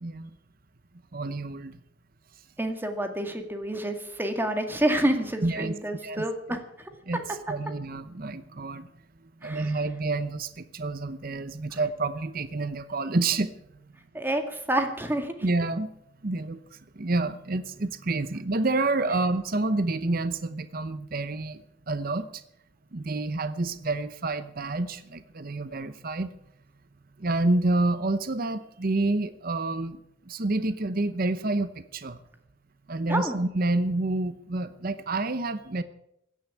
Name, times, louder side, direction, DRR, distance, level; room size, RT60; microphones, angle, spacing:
voice 1, 1.1-1.8 5.4-5.7 6.0-6.2 7.1-7.2 7.5-8.9 9.4-13.5 15.4-15.9 16.2-21.6 21.9-22.4 22.9-26.3 27.2-30.0 30.3-32.2 32.9-35.8, right 2 dB, 50° right, 12 dB, 0.8 m, -28 dB
voice 2, 2.6-6.6 9.4-9.8 11.7-11.8 14.1-15.3 33.1-33.4, right 1 dB, 10° right, 5 dB, 2.0 m, -28 dB
16.0 x 10.0 x 8.5 m, 0.79 s
head